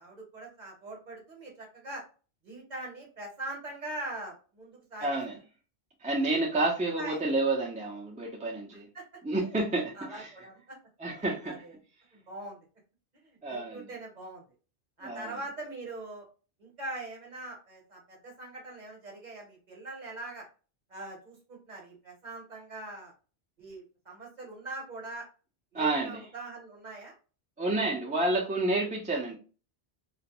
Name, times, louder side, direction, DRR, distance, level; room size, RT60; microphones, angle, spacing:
voice 1, 0.0-2.0 2.4-5.1 7.0-7.2 8.9-9.0 10.0-10.8 11.2-11.7 12.1-12.6 13.2-14.4 15.0-16.3 16.6-20.4 20.9-23.1 23.6-25.3 25.7-27.1 28.3-28.5, right 2 dB, 45° right, 1.0 m, -42 dB
voice 2, 5.0-5.4 6.0-8.9 9.2-10.3 11.0-11.6 13.4-13.9 15.0-15.4 25.7-26.3 27.6-29.3, right 2 dB, 10° right, 0.4 m, -30 dB
2.4 x 2.0 x 2.9 m
omnidirectional pair, 1.1 m